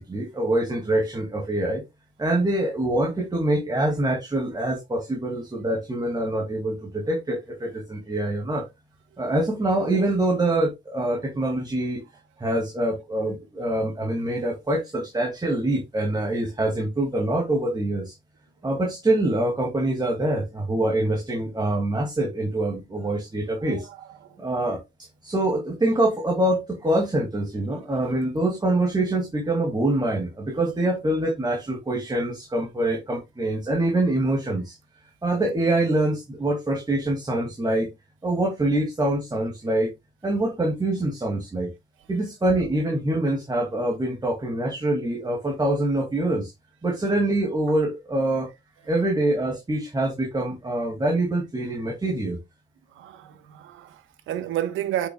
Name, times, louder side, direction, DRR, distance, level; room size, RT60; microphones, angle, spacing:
voice 1, 0.0-1.8 2.2-8.7 9.2-12.0 12.4-18.1 18.6-23.9 24.4-34.8 35.2-37.9 38.2-39.9 40.2-41.7 42.1-46.5 46.8-48.5 48.8-52.4, right 1 dB, 20° right, 2.3 m, -25 dB
voice 2, 23.7-24.5 52.9-55.1, right 12 dB, 85° right, 1.1 m, -32 dB
8.2 x 6.1 x 2.3 m
cardioid pair, 90°, 20 cm